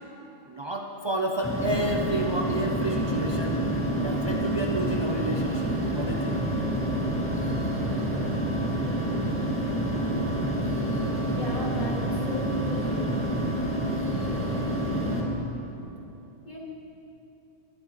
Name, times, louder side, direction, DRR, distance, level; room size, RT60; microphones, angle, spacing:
voice 1, 0.5-3.6 4.0-6.4, right 2 dB, 45° right, 0 dB, 0.3 m, -30 dB
sound 1, 1.4-15.2, right 1 dB, 10° left, 1.9 m, -28 dB
voice 2, 11.3-13.2 16.4-16.6, equal, 25° left, -5 dB, 2.3 m, -35 dB
21.0 x 11.5 x 3.2 m, 3.0 s
omnidirectional pair, 1.5 m